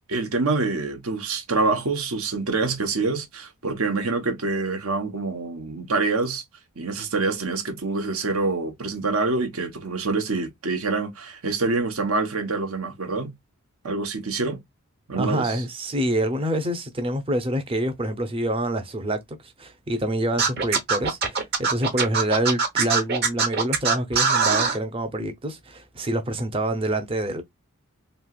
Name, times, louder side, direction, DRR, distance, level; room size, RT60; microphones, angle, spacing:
voice 1, 0.1-6.4 6.8-13.3 13.8-14.6 15.1-15.6, right 3 dB, 75° right, 1.0 m, -26 dB
voice 2, 15.2-27.4, right 1 dB, 25° right, 0.6 m, -26 dB
Scratching (performance technique), 20.4-24.8, right 5 dB, 50° right, 1.0 m, -22 dB
3.1 x 2.8 x 2.3 m
head